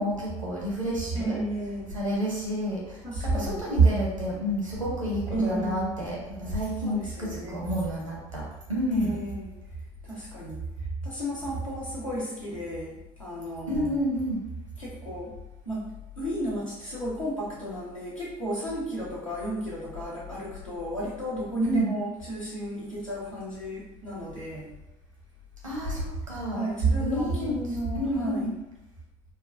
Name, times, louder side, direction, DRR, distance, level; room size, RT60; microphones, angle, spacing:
voice 1, 0.0-1.4 1.9-9.2 13.7-14.4 21.6-21.9 25.6-26.6 27.0-27.6 27.9-28.6, right 1 dB, 90° right, -4 dB, 0.9 m, -28 dB
voice 2, 1.1-1.9 3.0-3.6 5.3-5.9 6.8-7.6 8.9-9.4 10.0-10.6 11.0-14.0 14.8-15.3 15.6-15.9 16.2-24.7 26.5-28.5, equal, 90° left, -8 dB, 1.0 m, -33 dB
4.1 x 2.1 x 2.4 m, 0.92 s
figure-of-eight pair, 60°, 16 cm